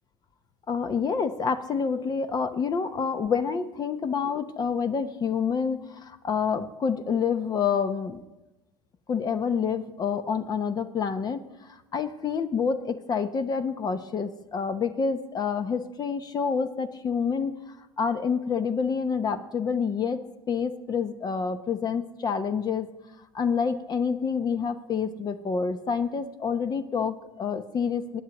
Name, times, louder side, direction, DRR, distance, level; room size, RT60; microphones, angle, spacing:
voice 1, 0.7-8.2 9.1-11.4 11.9-17.5 18.0-20.2 20.5-22.9 23.3-28.2, left 6 dB, 35° left, 10 dB, 0.9 m, -28 dB
19.5 x 9.5 x 3.0 m, 0.99 s
hypercardioid pair, 80°, 12 cm